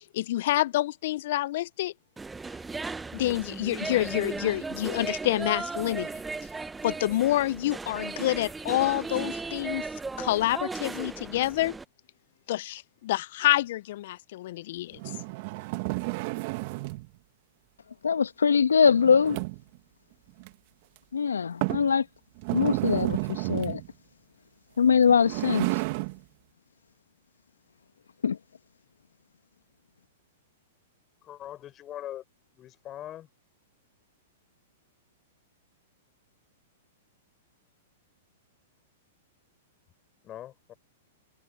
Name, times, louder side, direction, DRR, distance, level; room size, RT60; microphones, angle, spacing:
voice 1, 0.1-1.9 3.1-6.1 6.8-9.8 10.2-11.8 12.5-15.0, left 15 dB, 60° left, 0.6 m, -27 dB
sound 1, 2.2-11.8, right 4 dB, 10° right, 1.2 m, -36 dB
sound 2, 14.9-17.1 18.9-19.8 20.4-20.5 21.0-21.1 21.6-21.9 22.4-23.9 24.9-26.2, right 25 dB, 50° right, 1.9 m, -31 dB
voice 2, 18.0-19.4 21.1-22.0 22.5-23.8 24.8-25.7 28.2-28.4, left 6 dB, 85° left, 1.4 m, -22 dB
voice 3, 31.2-32.2 32.6-33.3 40.2-40.7, left 12 dB, 30° left, 5.4 m, -41 dB
hypercardioid pair, 110°, 0 cm